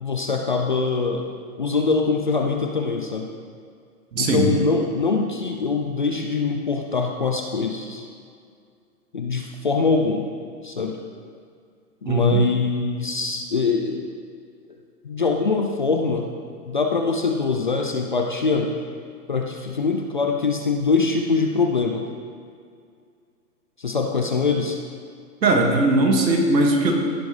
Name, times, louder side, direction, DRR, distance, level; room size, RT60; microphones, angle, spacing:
voice 1, 0.0-3.3 4.2-8.1 9.1-10.3 10.6-11.0 12.0-14.1 15.0-16.3 16.7-18.7 19.3-22.0 23.8-24.8, left 4 dB, 30° left, 3 dB, 0.4 m, -23 dB
voice 2, 4.1-4.5 12.1-12.4 25.4-26.9, right 2 dB, 80° right, 1 dB, 2.1 m, -19 dB
15.5 x 6.9 x 3.2 m, 2.2 s
hypercardioid pair, 145°, 50 cm